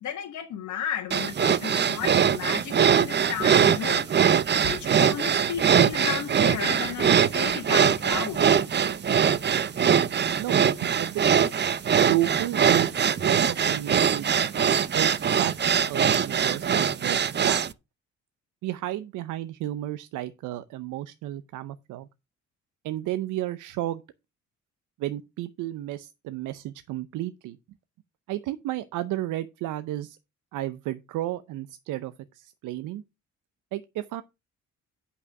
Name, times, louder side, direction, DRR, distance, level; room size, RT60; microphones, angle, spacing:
voice 1, 0.0-4.1 4.6-8.4, left 9 dB, 75° left, 1.6 m, -33 dB
sound 1, 1.1-17.7, right 8 dB, 35° right, 0.7 m, -22 dB
voice 2, 10.4-11.5 11.9-14.5 14.9-17.6 18.6-22.1 22.8-24.0 25.0-27.6 28.3-30.2 30.5-33.0 33.7-34.2, right 14 dB, 90° right, 0.6 m, -33 dB
8.4 x 5.6 x 5.2 m
cardioid pair, 90°, 30 cm